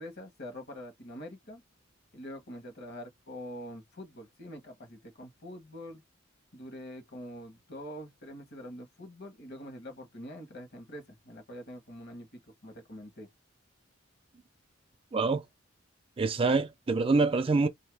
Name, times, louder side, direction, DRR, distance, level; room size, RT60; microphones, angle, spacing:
voice 1, 0.0-1.6 2.1-6.0 6.5-13.3, equal, 55° left, 1.2 m, -45 dB
voice 2, 15.1-15.4 16.2-17.7, right 3 dB, 30° right, 0.4 m, -25 dB
2.7 x 2.7 x 3.4 m
head